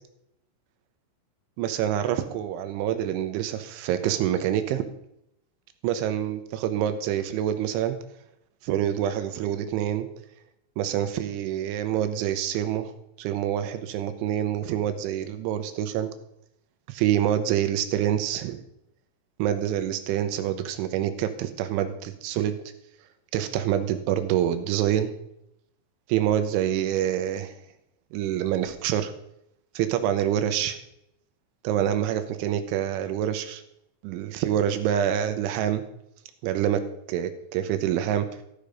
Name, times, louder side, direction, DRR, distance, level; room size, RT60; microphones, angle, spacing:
voice 1, 1.6-4.8 5.8-8.0 8.6-10.1 10.8-12.9 13.2-16.1 16.9-18.6 19.4-22.6 23.3-25.1 26.1-27.5 28.1-29.1 29.8-30.8 31.6-33.6 34.0-35.8 36.4-36.8 37.1-38.3, right 10 dB, 85° right, 9 dB, 3.1 m, -26 dB
13.5 x 6.8 x 5.1 m, 0.78 s
omnidirectional pair, 5.7 m